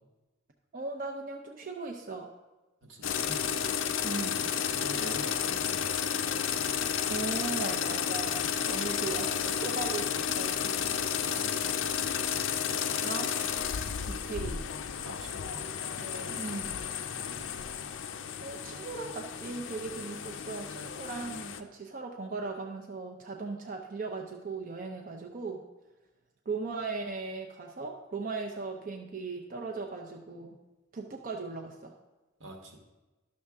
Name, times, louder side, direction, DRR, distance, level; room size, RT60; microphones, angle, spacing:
voice 1, 0.7-2.3 4.0-4.5 7.1-10.7 13.0-13.3 14.1-14.7 16.4-16.8 18.4-25.6 26.5-30.6 30.9-32.0, right 3 dB, 45° right, 2 dB, 0.6 m, -38 dB
voice 2, 2.8-3.4 4.7-6.0 10.9-11.9 15.0-16.5 32.4-32.8, right 1 dB, 80° right, 2 dB, 1.4 m, -46 dB
sound 1, 3.0-21.6, left 8 dB, 75° left, 0.5 m, -32 dB
11.5 x 6.5 x 3.5 m, 1.1 s
head